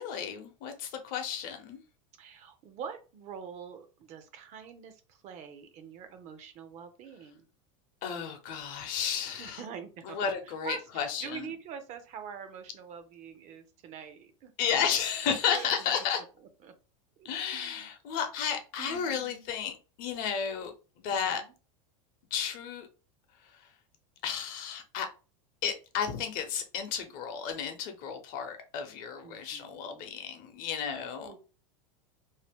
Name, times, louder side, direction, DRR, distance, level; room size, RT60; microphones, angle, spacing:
voice 1, 0.0-1.8 8.0-9.6 10.0-11.5 14.6-16.2 17.2-21.4 22.3-22.9 23.4-23.7 24.2-25.1 25.6-31.3, left 7 dB, 50° left, 0.8 m, -33 dB
voice 2, 2.2-7.5 9.4-14.5 15.5-16.7 17.2-17.9 18.8-19.5 21.1-21.5 29.2-30.1 30.8-31.4, right 7 dB, 40° right, 0.6 m, -45 dB
2.7 x 2.1 x 3.5 m
supercardioid pair, 125°, 17 cm